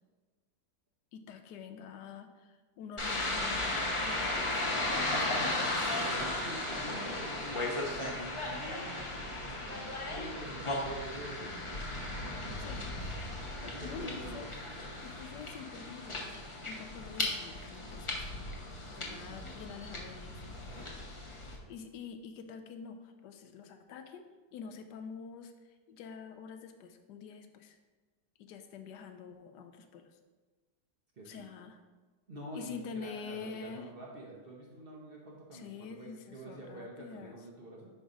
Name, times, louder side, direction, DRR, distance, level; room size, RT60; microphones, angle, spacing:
voice 1, 1.1-6.0 12.6-12.9 13.6-14.5 15.0-18.2 18.9-20.5 21.7-24.2 24.5-25.5 25.9-27.8 28.4-30.1 31.2-31.8 32.5-33.9 35.5-37.4, left 6 dB, 85° left, 7 dB, 1.2 m, -47 dB
sound 1, 3.0-21.6, left 2 dB, 30° left, 0.6 m, -36 dB
voice 2, 6.0-13.0 13.6-14.5 18.9-19.2 31.2-31.4 32.3-37.9, right 1 dB, 45° right, -3 dB, 0.9 m, -47 dB
5.4 x 4.3 x 5.0 m, 1.3 s
omnidirectional pair, 1.8 m